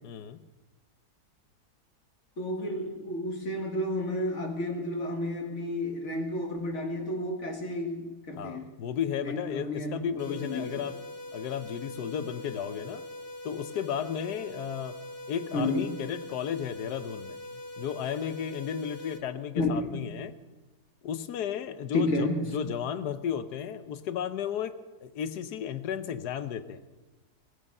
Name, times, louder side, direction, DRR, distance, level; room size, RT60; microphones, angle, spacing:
voice 1, 0.0-0.4 8.3-11.0 11.3-13.0 13.4-15.0 15.3-20.3 21.0-26.8, left 8 dB, 85° left, 12 dB, 1.3 m, -34 dB
voice 2, 2.4-8.7 9.2-10.0 10.3-10.8 15.5-15.9 19.6-19.7 21.9-22.5, left 1 dB, 45° left, 3 dB, 2.1 m, -31 dB
sound 1, 10.2-19.2, left 1 dB, 15° left, 1.2 m, -42 dB
16.5 x 14.5 x 5.4 m, 1.2 s
omnidirectional pair, 1.7 m